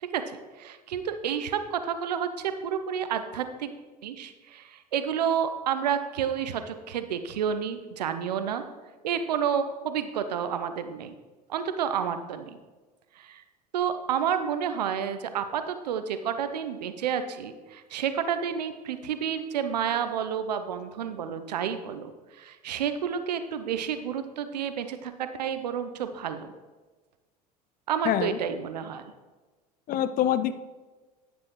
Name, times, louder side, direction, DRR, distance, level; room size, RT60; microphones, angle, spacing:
voice 1, 0.0-3.7 4.0-8.6 9.0-11.1 11.5-12.6 13.2-13.4 13.7-26.5 27.9-29.0, right 8 dB, 80° right, 10 dB, 0.7 m, -30 dB
voice 2, 28.1-28.4 29.9-30.6, left 10 dB, 45° left, 13 dB, 0.5 m, -25 dB
10.5 x 8.2 x 3.1 m, 1.3 s
hypercardioid pair, 70°, 21 cm